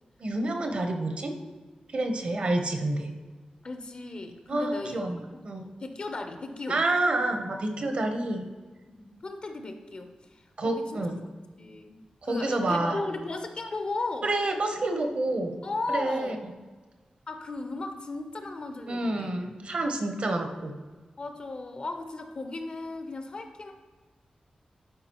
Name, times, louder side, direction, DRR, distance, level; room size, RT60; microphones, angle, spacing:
voice 1, 0.2-1.3 1.9-3.1 4.5-5.7 6.7-8.5 10.6-11.2 12.2-13.0 14.2-15.6 15.9-16.4 18.9-20.7, right 2 dB, 55° right, 5 dB, 0.9 m, -28 dB
voice 2, 3.6-5.0 5.3-5.4 5.8-6.8 8.9-11.1 11.6-14.3 15.6-16.4 17.3-19.3 21.2-23.7, left 2 dB, 45° left, 6 dB, 0.7 m, -36 dB
11.5 x 4.8 x 3.0 m, 1.3 s
wide cardioid pair, 150°, 2 cm